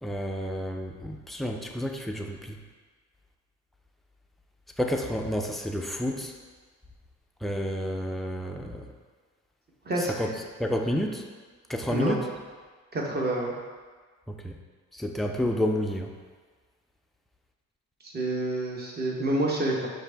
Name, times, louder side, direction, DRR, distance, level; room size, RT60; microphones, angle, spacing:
voice 1, 0.0-2.6 4.8-6.3 7.4-8.8 10.0-10.3 10.6-11.2 11.7-12.2 14.3-14.5 14.9-16.1, equal, ahead, 2 dB, 0.3 m, -30 dB
voice 2, 12.9-13.5 18.0-19.9, right 1 dB, 30° right, -2 dB, 0.9 m, -28 dB
4.8 x 2.6 x 3.3 m, 1.5 s
cardioid pair, 90°, 30 cm